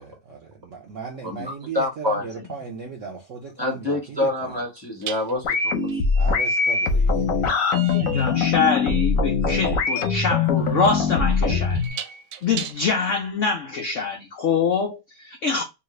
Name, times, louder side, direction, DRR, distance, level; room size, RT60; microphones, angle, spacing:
voice 1, 0.0-4.6 6.2-7.5, right 5 dB, 65° right, 0.8 m, -37 dB
voice 2, 1.2-2.2 3.6-6.0, left 2 dB, 20° right, 0.9 m, -27 dB
sound 1, 2.6-2.8 5.0-13.1, right 8 dB, 80° right, 1.3 m, -39 dB
sound 2, 5.4-11.9, left 5 dB, 60° left, 0.9 m, -22 dB
voice 3, 7.9-11.8 12.4-15.6, left 5 dB, 85° left, 0.6 m, -24 dB
3.2 x 2.4 x 3.0 m
omnidirectional pair, 2.1 m